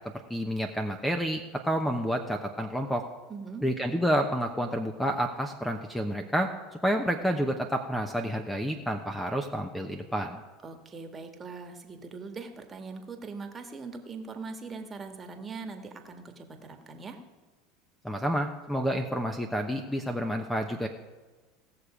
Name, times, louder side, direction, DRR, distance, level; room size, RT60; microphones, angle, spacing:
voice 1, 0.3-3.0 3.6-10.4 18.0-20.9, equal, 5° left, 5 dB, 0.9 m, -29 dB
voice 2, 3.3-3.7 10.6-17.2, right 4 dB, 25° right, 5 dB, 1.6 m, -41 dB
17.5 x 6.7 x 5.0 m, 1.3 s
supercardioid pair, 100°, 0 cm